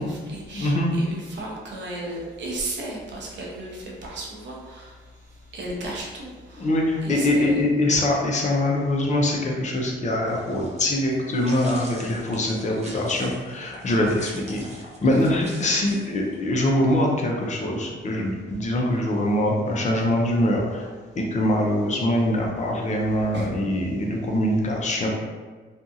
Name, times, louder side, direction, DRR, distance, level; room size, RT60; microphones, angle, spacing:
voice 1, 0.0-5.0 5.5-6.7 7.0-7.6 15.1-15.3 23.3-23.5, right 2 dB, 65° right, -3 dB, 0.8 m, -35 dB
voice 2, 0.5-0.9 6.6-14.6 15.0-20.9 21.2-25.1, left 1 dB, 35° left, -1 dB, 0.6 m, -23 dB
sound 1, 10.2-16.4, right 1 dB, 35° right, 0.7 m, -43 dB
2.6 x 2.4 x 2.6 m, 1.4 s
cardioid pair, 90°, 20 cm